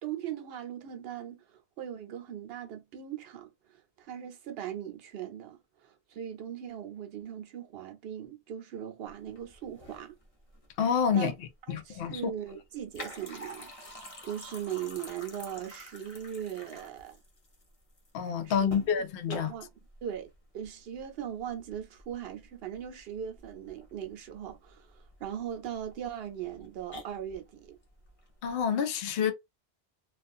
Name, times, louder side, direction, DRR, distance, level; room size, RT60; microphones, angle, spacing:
voice 1, 0.0-10.1 11.1-11.3 11.7-17.2 18.4-19.7 20.0-27.8, right 9 dB, 65° right, 0.8 m, -39 dB
sound 1, 9.1-28.6, left 1 dB, 35° left, 0.7 m, -49 dB
voice 2, 10.8-11.3 11.7-12.2 18.1-19.5 28.4-29.3, left 7 dB, 65° left, 0.7 m, -28 dB
2.4 x 2.3 x 2.5 m
omnidirectional pair, 1.2 m